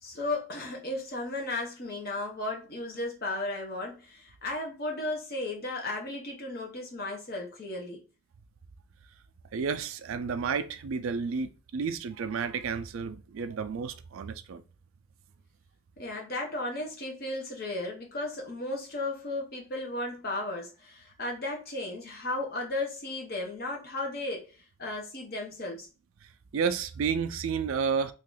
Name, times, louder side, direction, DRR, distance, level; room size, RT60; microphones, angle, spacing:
voice 1, 0.0-8.0 16.0-24.5 24.8-25.9, left 2 dB, 45° left, 0.9 m, -35 dB
voice 2, 9.5-14.6 26.5-28.1, right 6 dB, 70° right, 0.4 m, -31 dB
2.9 x 2.4 x 3.7 m
head